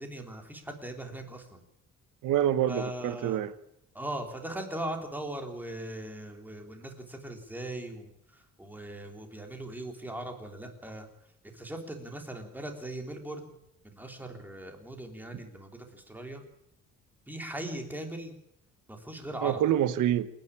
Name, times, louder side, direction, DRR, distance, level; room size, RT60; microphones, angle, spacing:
voice 1, 0.0-1.6 2.7-3.4 3.9-11.1 11.5-13.5 13.8-16.4 17.3-18.3 18.9-19.6, right 1 dB, 5° right, 3 dB, 3.5 m, -39 dB
voice 2, 2.2-3.5 19.4-20.3, right 11 dB, 75° right, 13 dB, 1.3 m, -26 dB
28.0 x 10.5 x 8.7 m, 0.79 s
cardioid pair, 160°, 31 cm